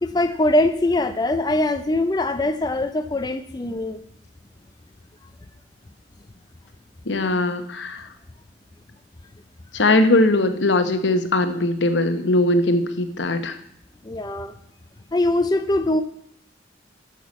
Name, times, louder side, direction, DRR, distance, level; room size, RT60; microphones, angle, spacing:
voice 1, 0.0-4.0 14.0-14.5 15.1-16.0, left 1 dB, 20° left, 9 dB, 0.5 m, -22 dB
voice 2, 7.1-8.1 9.7-13.6, left 2 dB, 85° left, 9 dB, 1.1 m, -20 dB
11.0 x 6.0 x 7.3 m, 0.72 s
head